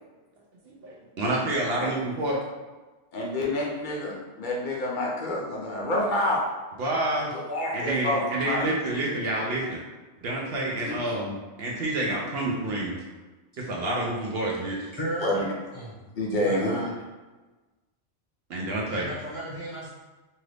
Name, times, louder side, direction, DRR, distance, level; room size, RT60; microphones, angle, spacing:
voice 1, 0.8-2.4 6.8-7.3 7.7-9.8 10.2-12.9 13.6-14.9 18.5-19.1, right 1 dB, 65° right, -3 dB, 0.7 m, -28 dB
voice 2, 3.1-6.4 7.3-8.6 10.7-11.1 12.0-12.1 15.2-15.3 16.2-16.8, left 1 dB, 55° left, -3 dB, 0.6 m, -28 dB
voice 3, 14.9-15.4 15.7-15.9 16.4-16.9 18.9-19.9, right 1 dB, 30° left, -9 dB, 0.9 m, -35 dB
2.8 x 2.4 x 3.2 m, 1.2 s
omnidirectional pair, 1.2 m